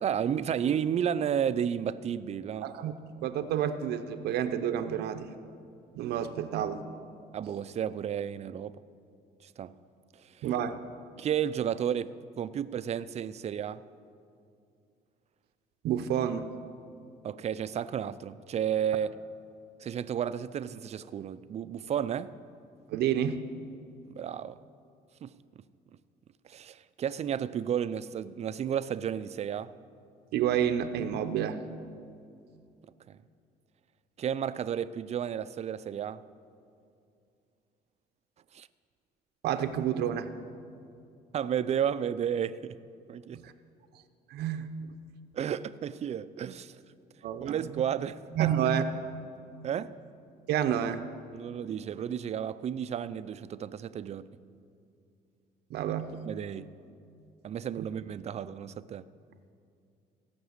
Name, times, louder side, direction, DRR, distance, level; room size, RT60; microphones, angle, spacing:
voice 1, 0.0-2.7 7.3-8.8 9.6-9.7 10.4-10.5 11.2-12.1 12.4-13.8 17.2-19.1 19.8-22.3 24.1-24.6 25.2-25.3 26.4-29.7 33.1-33.2 34.2-36.2 38.5-38.7 41.3-42.8 43.1-43.4 45.3-46.8 47.4-48.5 49.6-49.9 51.3-54.3 56.2-56.7 57.4-59.0, right 9 dB, 40° right, 0.5 m, -32 dB
voice 2, 2.6-5.3 5.9-6.8 10.4-10.8 15.8-16.4 22.9-23.4 30.3-31.6 39.4-40.3 43.3-43.5 44.3-44.9 47.2-47.6 48.3-48.8 50.5-51.0 55.7-56.2 57.8-57.9, right 9 dB, 75° right, 0.7 m, -29 dB
16.5 x 6.0 x 8.0 m
cardioid pair, 110°, 17 cm